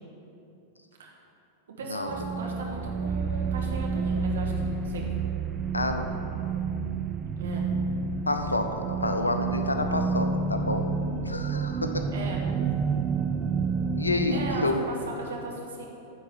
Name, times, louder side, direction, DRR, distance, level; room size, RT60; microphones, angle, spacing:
voice 1, 1.8-5.1 7.4-7.7 12.1-12.4 14.3-15.9, right 3 dB, 65° right, -2 dB, 1.7 m, -37 dB
sound 1, 2.1-14.8, right 4 dB, 25° right, 0.5 m, -29 dB
voice 2, 5.7-6.1 8.3-10.8 11.2-12.1 14.0-14.8, left 2 dB, 80° left, 6 dB, 0.7 m, -29 dB
10.0 x 4.5 x 7.1 m, 2.8 s
figure-of-eight pair, 90°, 0 cm